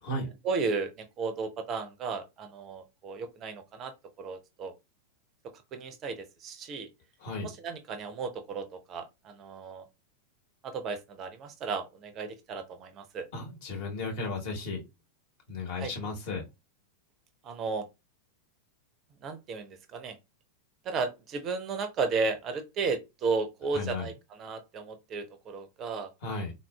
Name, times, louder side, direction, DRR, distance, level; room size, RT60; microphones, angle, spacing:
voice 1, 0.4-4.7 5.7-6.9 7.4-9.9 10.6-13.3 15.8-15.9 17.4-17.9 19.2-20.2 20.8-26.1, right 4 dB, 30° right, 0.4 m, -34 dB
voice 2, 7.2-7.5 13.3-14.8 15.5-16.4 23.7-24.1 26.2-26.5, left 3 dB, 50° left, 1.0 m, -34 dB
3.7 x 2.4 x 2.2 m
figure-of-eight pair, 90°, 0 cm